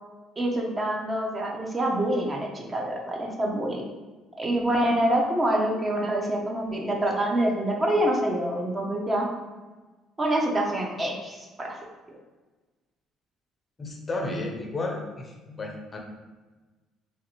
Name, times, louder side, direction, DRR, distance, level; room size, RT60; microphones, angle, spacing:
voice 1, 0.4-3.8 4.4-9.3 10.2-11.8, right 1 dB, 25° right, 0 dB, 0.6 m, -26 dB
voice 2, 13.8-16.0, left 2 dB, 30° left, 1 dB, 0.5 m, -33 dB
3.2 x 2.5 x 2.9 m, 1.3 s
cardioid pair, 90°, 0 cm